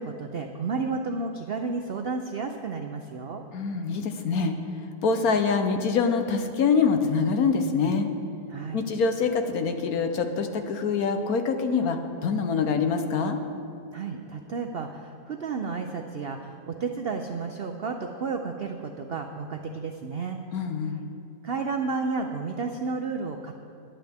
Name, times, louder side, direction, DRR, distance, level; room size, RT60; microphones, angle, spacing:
voice 1, 0.0-3.4 8.5-8.8 13.9-20.4 21.4-23.5, right 4 dB, 75° right, 4 dB, 0.5 m, -32 dB
voice 2, 3.5-4.5 5.0-8.1 8.7-13.4 20.5-21.0, left 5 dB, 65° left, 7 dB, 1.2 m, -25 dB
21.5 x 8.8 x 3.5 m, 2.5 s
omnidirectional pair, 1.8 m